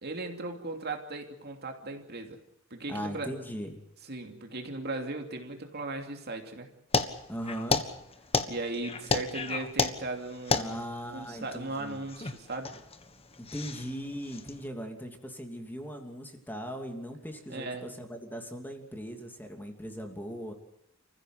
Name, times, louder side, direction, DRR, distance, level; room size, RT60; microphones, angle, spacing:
voice 1, 0.0-2.4 2.7-3.3 4.1-6.7 8.5-10.8 11.1-12.8 17.5-17.9, right 2 dB, 55° right, 4 dB, 2.9 m, -37 dB
voice 2, 2.9-3.8 7.3-7.8 10.5-12.1 13.4-20.5, equal, 10° left, 3 dB, 2.8 m, -39 dB
sound 1, 6.9-14.6, left 4 dB, 30° left, 1.5 m, -32 dB
28.5 x 15.5 x 8.0 m, 0.81 s
head